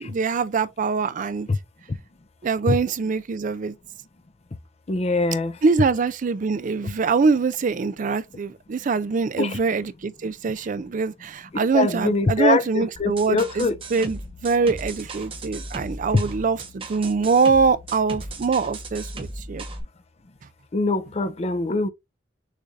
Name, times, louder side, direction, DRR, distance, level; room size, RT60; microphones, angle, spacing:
voice 1, 0.0-1.5 2.4-3.7 5.6-19.6, right 4 dB, 45° right, 0.4 m, -23 dB
voice 2, 4.9-5.5 9.4-9.6 11.7-13.8 16.1-16.2 20.7-21.9, left 3 dB, 35° left, 0.5 m, -23 dB
sound 1, 13.0-19.8, right 2 dB, 30° right, 1.0 m, -37 dB
6.4 x 2.6 x 3.2 m
head